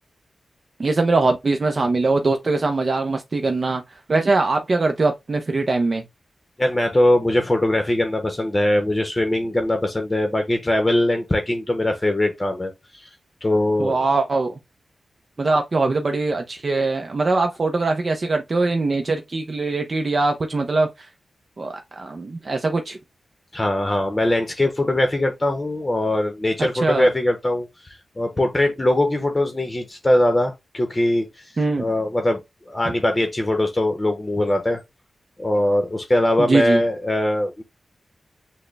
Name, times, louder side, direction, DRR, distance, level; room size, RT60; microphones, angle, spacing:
voice 1, 0.8-3.8 4.1-6.0 13.8-14.6 15.4-21.1 21.6-23.0 26.8-27.1 31.6-31.9 36.4-36.8, right 3 dB, 40° right, 0.6 m, -22 dB
voice 2, 6.6-13.1 13.4-14.0 23.5-31.3 31.5-32.4 32.7-34.8 35.4-37.6, left 1 dB, 20° left, 0.8 m, -21 dB
6.2 x 2.2 x 3.3 m
wide cardioid pair, 125°, 0 cm